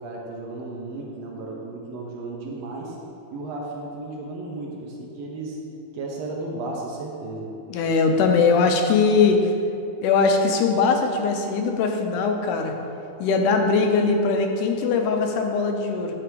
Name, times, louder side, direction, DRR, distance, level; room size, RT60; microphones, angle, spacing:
voice 1, 0.0-3.0 3.3-5.6 5.9-7.5, right 2 dB, 70° right, -2 dB, 1.7 m, -34 dB
voice 2, 7.7-9.4 10.0-12.7 13.2-16.1, left 4 dB, 85° left, 4 dB, 2.1 m, -21 dB
10.0 x 3.4 x 4.6 m, 2.7 s
omnidirectional pair, 3.6 m